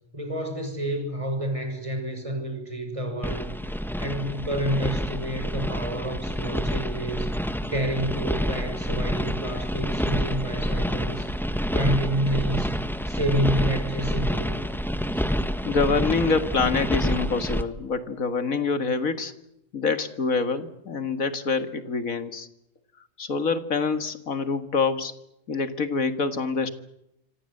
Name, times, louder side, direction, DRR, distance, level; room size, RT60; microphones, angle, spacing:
voice 1, 0.1-7.3 7.7-11.3 11.7-12.8 13.0-14.6, right 1 dB, 25° right, 5 dB, 6.4 m, -29 dB
sound 1, 3.2-17.6, equal, ahead, 1.3 m, -28 dB
voice 2, 15.6-19.3 19.7-22.5 23.2-25.1 25.5-26.7, left 4 dB, 90° left, 9 dB, 2.3 m, -26 dB
26.5 x 25.0 x 7.9 m, 0.83 s
omnidirectional pair, 1.4 m